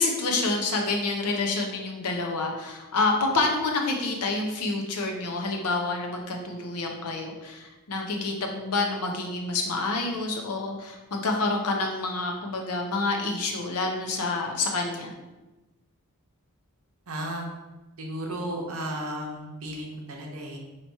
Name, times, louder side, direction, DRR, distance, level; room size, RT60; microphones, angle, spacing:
voice 1, 0.0-15.1, left 3 dB, 90° left, 2 dB, 0.7 m, -28 dB
voice 2, 17.1-17.5 18.0-20.6, right 1 dB, 65° right, 0 dB, 0.8 m, -34 dB
2.9 x 2.8 x 4.4 m, 1.1 s
head